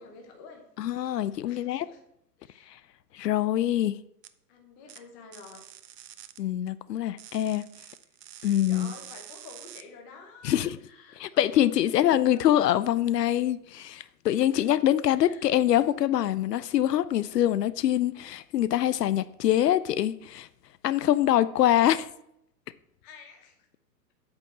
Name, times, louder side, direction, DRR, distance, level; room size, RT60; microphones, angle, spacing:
voice 1, 0.0-0.6 1.4-2.0 2.4-2.7 4.5-5.6 8.4-12.5 14.2-14.7 15.2-15.5 23.0-23.5, left 4 dB, 10° left, 0.6 m, -49 dB
voice 2, 0.8-1.9 3.1-4.0 6.4-7.6 8.4-8.9 10.4-10.8 11.2-20.5 20.8-22.1, left 12 dB, 70° left, 0.6 m, -24 dB
sound 1, 4.2-4.3 4.9-5.0 5.3-6.4 7.2-9.8, right 11 dB, 75° right, 0.9 m, -47 dB
8.6 x 4.7 x 7.4 m
hypercardioid pair, 155°, 50 cm